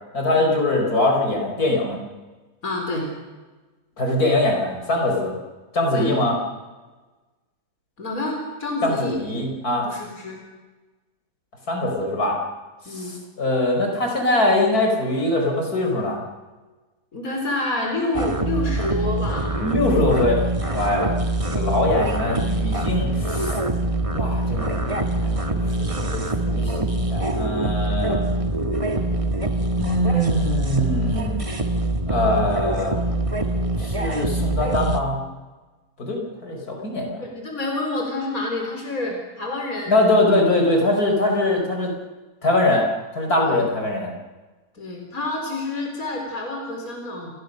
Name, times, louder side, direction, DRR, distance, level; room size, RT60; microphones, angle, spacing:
voice 1, 0.1-2.0 4.0-5.3 5.7-6.4 8.8-9.9 11.7-12.4 12.9-16.2 19.5-20.4 20.7-21.1 21.5-23.6 24.1-28.3 29.8-31.6 32.1-33.0 33.8-35.2 36.0-37.2 39.9-41.9 42.4-42.9 43.1-44.1, left 1 dB, 80° left, 1 dB, 5.5 m, -22 dB
voice 2, 2.6-3.1 5.9-6.1 8.0-9.2 9.8-10.4 12.8-13.2 17.1-19.6 20.9-21.1 37.2-40.0 43.4-43.6 44.7-47.3, left 2 dB, 65° left, 1 dB, 4.8 m, -28 dB
sound 1, 18.1-35.0, right 2 dB, 20° right, 1.7 m, -24 dB
29.5 x 21.5 x 6.7 m, 1.3 s
omnidirectional pair, 1.6 m